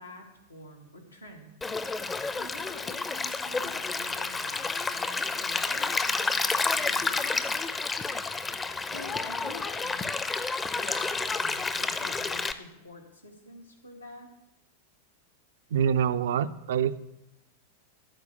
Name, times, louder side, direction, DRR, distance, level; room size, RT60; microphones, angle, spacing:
voice 1, 0.0-1.5 2.4-7.6 8.8-10.2 10.4-14.3, left 2 dB, 85° left, 1 dB, 2.0 m, -47 dB
Stream, 1.6-12.5, left 4 dB, 15° left, 0.6 m, -30 dB
voice 2, 15.7-17.0, right 8 dB, 60° right, 13 dB, 0.5 m, -25 dB
13.0 x 4.8 x 8.1 m, 0.88 s
figure-of-eight pair, 90°, 0 cm